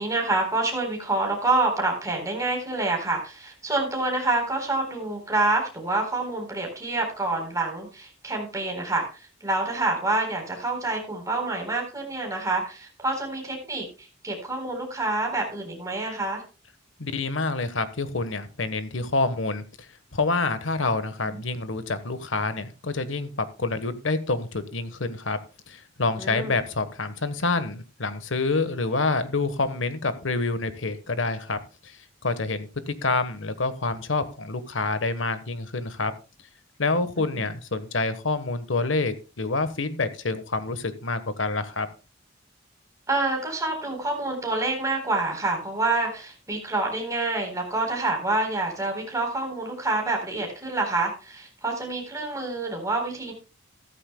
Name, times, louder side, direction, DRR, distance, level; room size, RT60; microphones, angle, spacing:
voice 1, 0.0-13.9 14.2-16.4 21.3-21.4 26.2-26.6 37.2-37.5 43.1-53.3, right 2 dB, 15° right, 2 dB, 4.0 m, -27 dB
voice 2, 17.0-19.6 20.1-25.4 25.7-32.0 32.2-36.1 36.8-41.9, left 3 dB, 80° left, 12 dB, 1.2 m, -27 dB
14.5 x 13.5 x 2.2 m, 0.33 s
head